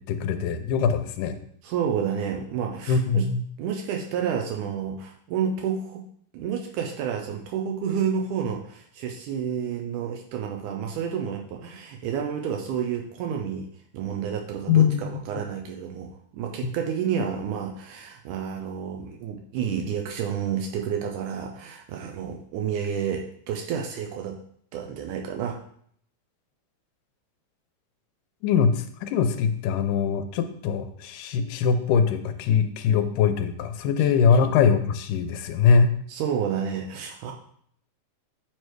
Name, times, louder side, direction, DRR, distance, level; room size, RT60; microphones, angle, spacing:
voice 1, 0.1-1.4 2.9-3.4 14.7-15.2 28.4-35.9, left 6 dB, 85° left, 8 dB, 2.2 m, -22 dB
voice 2, 1.6-3.3 3.6-6.0 6.3-13.7 13.9-24.4 24.7-25.6 34.4-34.5 36.1-37.3, right 7 dB, 80° right, 2 dB, 2.0 m, -30 dB
8.8 x 3.3 x 4.6 m, 0.65 s
omnidirectional pair, 3.7 m